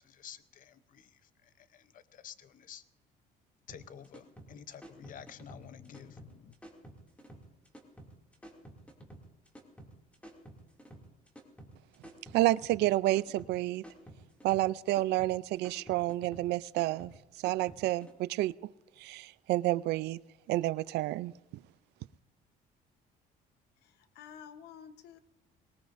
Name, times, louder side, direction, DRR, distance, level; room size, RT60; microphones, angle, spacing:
voice 1, 0.0-2.8 3.7-6.6, left 9 dB, 50° left, 14 dB, 0.7 m, -51 dB
sound 1, 3.7-18.1, right 1 dB, 10° left, 2.5 m, -52 dB
voice 2, 12.3-13.8 14.4-17.1 17.4-18.5 19.0-20.2 20.5-21.3, right 17 dB, 80° right, 18 dB, 0.4 m, -29 dB
voice 3, 23.8-25.2, left 8 dB, 80° left, 11 dB, 1.0 m, -51 dB
20.5 x 19.0 x 2.6 m, 1.1 s
cardioid pair, 110°, 17 cm